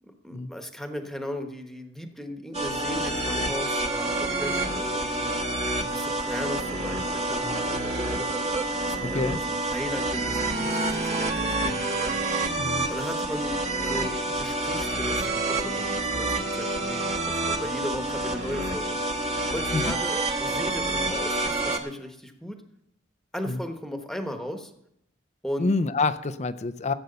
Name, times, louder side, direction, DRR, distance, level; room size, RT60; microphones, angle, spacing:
voice 1, 0.0-5.4 5.9-8.2 8.8-12.2 12.9-19.0 19.5-22.6 23.3-24.7 25.4-25.7, equal, ahead, 5 dB, 1.2 m, -36 dB
sound 1, 2.5-21.8, right 2 dB, 35° right, 1.3 m, -28 dB
voice 2, 9.0-9.4 12.6-12.9 19.7-19.9 23.5-23.6 25.6-26.9, left 3 dB, 35° left, 12 dB, 0.5 m, -27 dB
15.0 x 8.0 x 6.7 m, 0.77 s
head